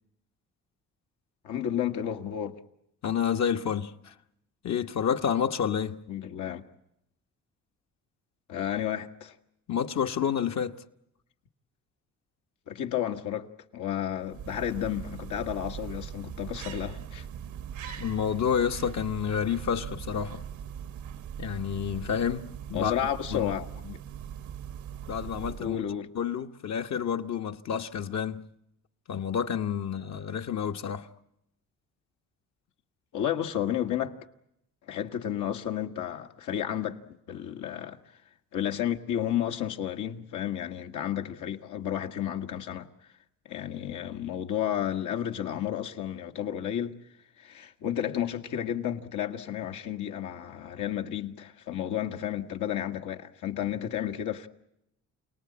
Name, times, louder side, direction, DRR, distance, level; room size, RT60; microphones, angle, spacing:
voice 1, 1.4-2.6 6.1-6.6 8.5-9.4 12.7-17.2 17.8-18.0 22.7-24.0 25.6-26.1 33.1-34.2 34.9-38.0 38.5-42.9 43.5-47.0 47.4-54.5, left 10 dB, 80° left, 1.6 m, -32 dB
voice 2, 3.0-4.1 4.6-6.0 9.7-10.8 18.0-20.4 21.4-22.9 23.3-23.5 25.1-25.8 26.1-28.5 29.1-31.1, left 8 dB, 60° left, 1.2 m, -29 dB
sound 1, 14.1-25.9, right 9 dB, 75° right, 1.0 m, -40 dB
28.5 x 19.0 x 8.7 m
cardioid pair, 90°, 30 cm